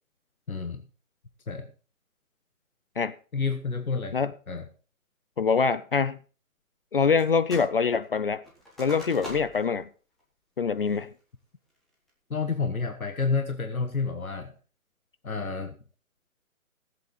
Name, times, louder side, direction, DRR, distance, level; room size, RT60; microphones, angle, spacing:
voice 1, 0.5-0.8 1.5-1.7 3.3-4.2 4.5-4.7 12.3-14.5 15.2-15.8, left 4 dB, 80° left, 1.4 m, -29 dB
voice 2, 5.4-6.2 6.9-8.4 8.8-9.9 10.6-11.1, left 5 dB, 40° left, 0.5 m, -24 dB
sound 1, 7.2-7.8 8.0-9.7 10.2-10.3 10.8-11.2 11.7-12.1, equal, ahead, 0.6 m, -43 dB
17.0 x 7.8 x 4.1 m
figure-of-eight pair, 140°, 42 cm